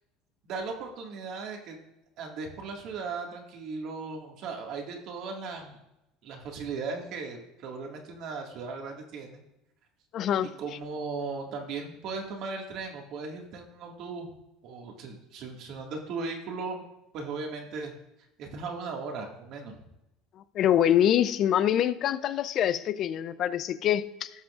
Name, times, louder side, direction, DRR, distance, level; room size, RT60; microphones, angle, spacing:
voice 1, 0.4-1.8 2.2-5.8 6.2-9.4 10.6-14.3 14.6-16.9 17.1-17.9 18.4-19.8, right 4 dB, 60° right, 1 dB, 2.0 m, -37 dB
voice 2, 10.1-10.5 20.5-24.3, left 10 dB, 55° left, 15 dB, 0.5 m, -25 dB
17.5 x 6.0 x 2.5 m, 0.89 s
hypercardioid pair, 75°, 0 cm